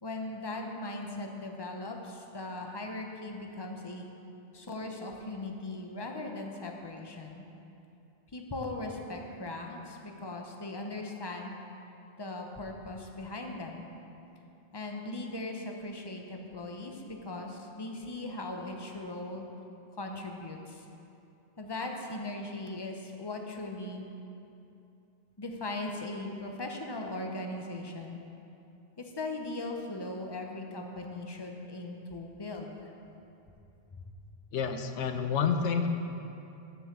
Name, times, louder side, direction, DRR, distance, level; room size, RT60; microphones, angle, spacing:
voice 1, 0.0-4.1 4.5-7.4 8.3-11.6 12.2-13.9 14.7-19.5 20.0-20.9 21.6-24.0 25.4-28.2 29.0-32.9 33.9-34.0, left 2 dB, 25° left, 2 dB, 0.7 m, -39 dB
voice 2, 34.5-35.9, left 6 dB, 85° left, 7 dB, 1.0 m, -29 dB
7.1 x 7.0 x 7.3 m, 2.8 s
omnidirectional pair, 1.2 m